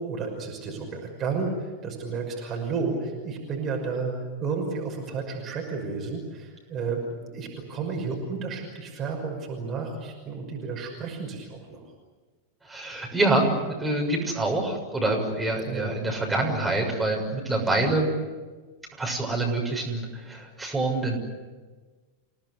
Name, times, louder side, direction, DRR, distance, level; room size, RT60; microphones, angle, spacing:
voice 1, 0.0-4.1 4.4-11.8 15.6-15.9, right 4 dB, 30° right, 1 dB, 5.9 m, -32 dB
voice 2, 12.6-18.1 19.0-21.2, right 2 dB, 5° right, -1 dB, 6.6 m, -26 dB
29.0 x 18.0 x 9.9 m, 1.3 s
figure-of-eight pair, 90°, 0 cm